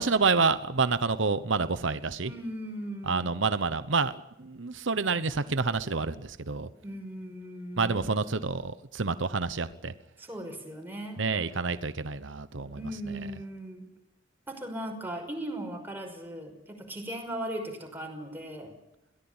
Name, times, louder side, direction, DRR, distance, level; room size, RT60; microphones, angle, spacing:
voice 1, 0.0-2.3 3.1-6.7 7.8-9.9 11.2-12.8, right 4 dB, 65° right, 13 dB, 1.0 m, -28 dB
voice 2, 2.2-3.3 6.8-8.1 10.2-11.2 12.8-13.8 14.5-18.7, right 1 dB, 10° right, 1 dB, 5.7 m, -38 dB
22.5 x 17.5 x 8.9 m, 0.89 s
head